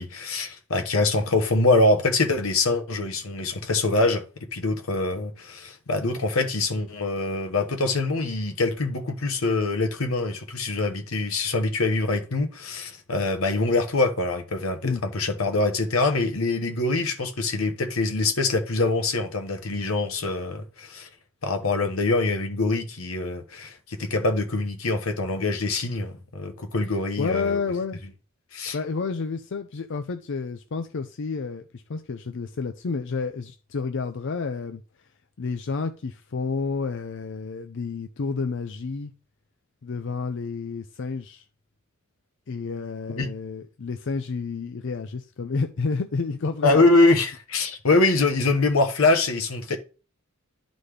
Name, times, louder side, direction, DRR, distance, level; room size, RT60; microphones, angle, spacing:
voice 1, 0.0-4.2 4.5-21.1 21.4-27.6 28.5-28.8 43.2-43.3 46.6-49.8, left 2 dB, 90° left, 1.1 m, -24 dB
voice 2, 27.2-28.0 28.7-34.8 35.4-39.1 39.8-41.4 42.5-46.8, left 4 dB, 60° left, 0.5 m, -30 dB
11.0 x 4.1 x 3.4 m
head